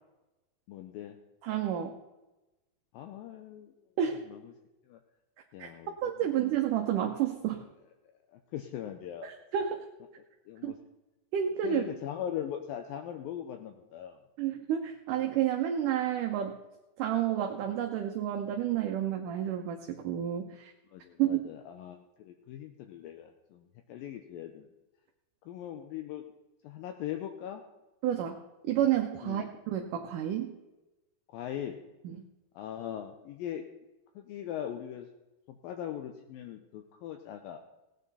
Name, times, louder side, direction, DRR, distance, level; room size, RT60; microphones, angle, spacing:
voice 1, 0.7-1.2 2.9-3.7 4.3-4.5 4.9-5.0 5.5-5.9 8.3-9.3 10.5-10.8 11.6-14.2 20.9-24.7 25.5-26.2 26.6-27.6 29.2-29.5 31.3-31.8 32.6-33.7 34.2-35.1 35.5-37.6, left 10 dB, 80° left, 5 dB, 2.4 m, -40 dB
voice 2, 1.4-2.0 4.0-4.2 5.6-5.7 6.0-7.7 9.2-9.8 10.6-10.7 11.3-11.8 14.4-16.6 17.0-20.7 21.2-21.4 28.0-30.5 32.0-32.2, right 10 dB, 70° right, 3 dB, 2.1 m, -30 dB
17.0 x 9.2 x 4.1 m, 1.0 s
omnidirectional pair, 4.4 m